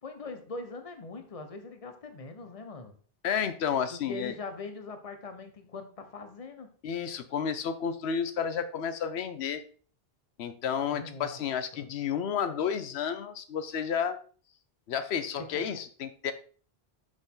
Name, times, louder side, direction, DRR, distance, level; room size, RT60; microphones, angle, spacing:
voice 1, 0.0-3.0 3.9-6.7 10.9-11.4 11.7-11.8 15.5-15.6, left 3 dB, 35° left, 1.0 m, -41 dB
voice 2, 3.2-4.3 6.8-9.6 10.4-14.2 14.9-16.3, left 7 dB, 90° left, 0.9 m, -31 dB
6.4 x 6.2 x 3.7 m
omnidirectional pair, 1.1 m